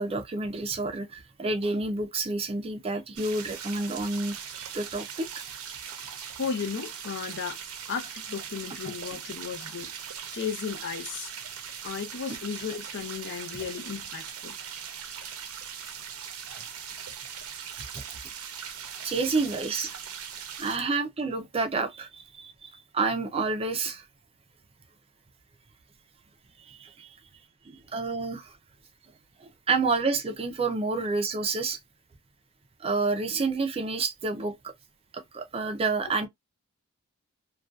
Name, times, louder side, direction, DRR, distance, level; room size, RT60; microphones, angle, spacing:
voice 1, 0.0-5.4 16.5-16.6 17.9-18.0 19.0-19.9 20.6-24.1 26.6-27.2 27.7-28.6 29.4-31.8 32.8-34.7 35.1-36.3, right 3 dB, 25° right, 0.4 m, -29 dB
sound 1, 3.2-20.8, right 8 dB, 75° right, 0.6 m, -40 dB
voice 2, 6.4-7.6 7.9-9.9 10.3-11.3 11.8-14.6, left 6 dB, 55° left, 0.6 m, -34 dB
2.5 x 2.2 x 2.3 m
head